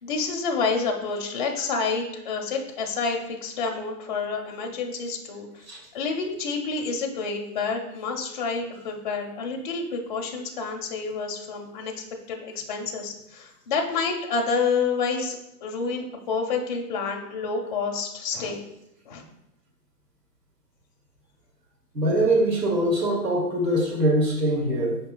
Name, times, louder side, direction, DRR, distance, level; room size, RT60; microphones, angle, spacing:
voice 1, 0.0-5.6 5.9-11.9 12.3-18.6 19.1-19.2, left 4 dB, 35° left, 2 dB, 0.5 m, -28 dB
voice 2, 21.9-25.0, right 1 dB, 85° right, -1 dB, 1.1 m, -23 dB
5.1 x 2.7 x 2.2 m, 0.82 s
figure-of-eight pair, 125°, 47 cm